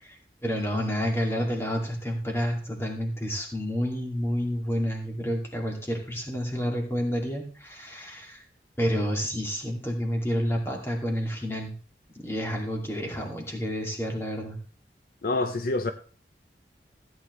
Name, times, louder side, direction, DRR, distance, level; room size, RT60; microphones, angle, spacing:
voice 1, 0.0-8.4 8.8-11.7 12.1-14.6, equal, 15° left, 2.3 m, -29 dB
voice 2, 15.2-15.9, left 2 dB, 55° left, 0.5 m, -26 dB
15.0 x 9.0 x 3.1 m
head